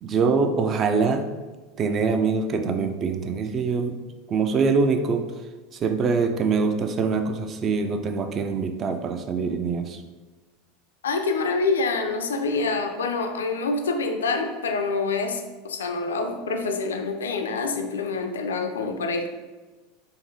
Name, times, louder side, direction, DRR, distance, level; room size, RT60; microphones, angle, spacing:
voice 1, 0.0-1.3 1.8-4.0 4.3-5.2 5.8-10.0, right 5 dB, 35° right, 7 dB, 0.4 m, -24 dB
voice 2, 11.0-19.3, left 3 dB, 80° left, 5 dB, 0.4 m, -26 dB
3.8 x 2.6 x 2.7 m, 1.3 s
hypercardioid pair, 85°, 0 cm